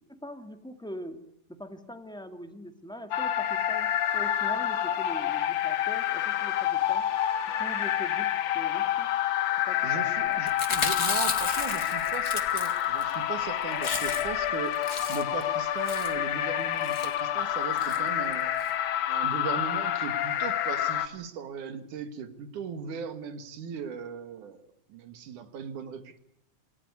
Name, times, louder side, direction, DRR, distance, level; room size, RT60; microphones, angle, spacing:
voice 1, 0.1-1.2 1.5-7.0 7.6-9.1 9.5-10.4, equal, ahead, 7 dB, 1.3 m, -43 dB
sound 1, 3.1-21.1, left 11 dB, 65° left, 2.1 m, -28 dB
voice 2, 9.8-14.7 15.1-18.5 19.1-24.6 24.9-26.2, right 6 dB, 80° right, 10 dB, 3.3 m, -38 dB
Chewing mastication, 10.5-13.1 13.4-13.5 13.7-14.4 14.7-15.4 15.9-16.2 16.8-17.1 17.8-18.0 18.3-18.4 18.6-18.7, left 4 dB, 30° left, 2.3 m, -33 dB
28.0 x 16.0 x 9.7 m, 0.75 s
omnidirectional pair, 3.5 m